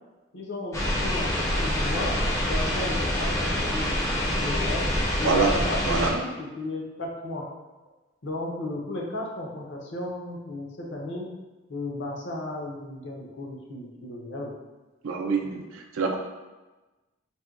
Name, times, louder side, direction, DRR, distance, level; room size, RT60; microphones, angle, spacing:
voice 1, 0.3-3.9 4.4-4.9 5.2-7.4 8.2-11.3 11.7-14.5, left 1 dB, 65° left, -1 dB, 0.6 m, -34 dB
sound 1, 0.7-6.1, left 1 dB, 15° left, 0.4 m, -26 dB
voice 2, 15.0-16.2, right 4 dB, 80° right, 1 dB, 0.4 m, -25 dB
4.2 x 2.1 x 2.4 m, 1.2 s
head